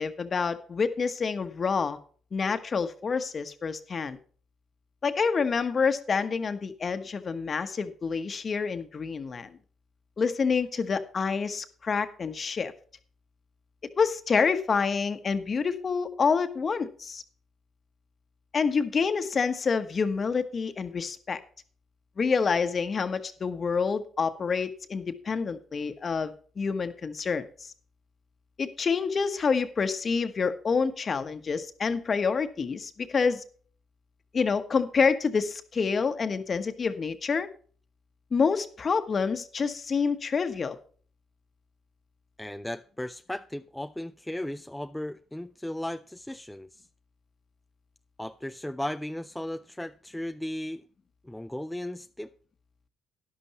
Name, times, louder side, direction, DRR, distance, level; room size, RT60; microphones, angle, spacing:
voice 1, 0.0-2.0 2.3-4.2 5.0-9.5 10.2-12.7 14.0-17.2 18.5-21.4 22.2-27.7 28.6-33.4 34.3-37.5 38.3-40.8, left 5 dB, 40° left, 1.2 m, -27 dB
voice 2, 42.4-46.9 48.2-50.8 51.2-52.3, left 1 dB, 5° left, 0.4 m, -36 dB
12.5 x 11.0 x 3.0 m
cardioid pair, 85°, 0 cm